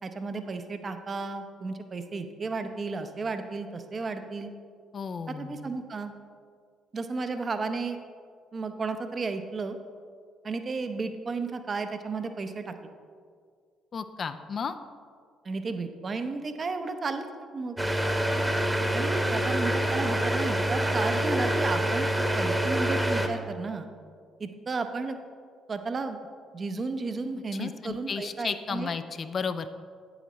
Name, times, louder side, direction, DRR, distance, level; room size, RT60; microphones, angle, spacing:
voice 1, 0.0-4.5 5.3-6.1 6.9-8.0 8.5-9.8 10.4-12.7 15.4-17.8 18.9-23.9 24.4-25.2 25.7-26.2 26.5-28.9, right 4 dB, 40° right, 8 dB, 0.7 m, -33 dB
voice 2, 4.9-5.7 13.9-14.7 27.6-29.7, left 5 dB, 50° left, 10 dB, 0.4 m, -33 dB
sound 1, 17.8-23.3, right 1 dB, 10° right, 1.0 m, -26 dB
9.1 x 7.9 x 3.1 m, 2.1 s
hypercardioid pair, 50°, 0 cm